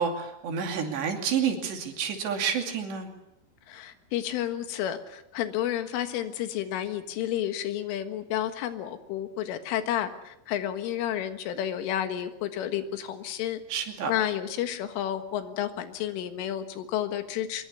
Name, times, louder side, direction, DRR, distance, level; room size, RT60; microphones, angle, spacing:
voice 1, 0.0-3.1 13.7-14.1, right 7 dB, 65° right, 4 dB, 4.6 m, -29 dB
voice 2, 3.7-13.6 14.1-17.6, left 11 dB, 80° left, 8 dB, 4.1 m, -31 dB
24.5 x 22.5 x 7.0 m, 0.84 s
omnidirectional pair, 5.7 m